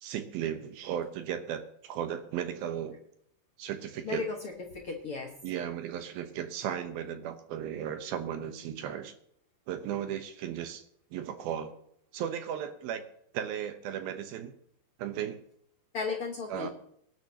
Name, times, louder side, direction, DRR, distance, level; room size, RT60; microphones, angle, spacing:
voice 1, 0.0-3.0 3.6-4.2 5.4-9.1 9.7-10.8 11.1-11.8 12.1-13.0 13.3-14.5 15.0-15.4 16.5-16.7, right 9 dB, 70° right, 8 dB, 2.6 m, -35 dB
voice 2, 4.0-5.3 15.9-16.7, left 4 dB, 70° left, 0 dB, 1.3 m, -35 dB
23.5 x 11.0 x 2.9 m, 0.69 s
omnidirectional pair, 4.8 m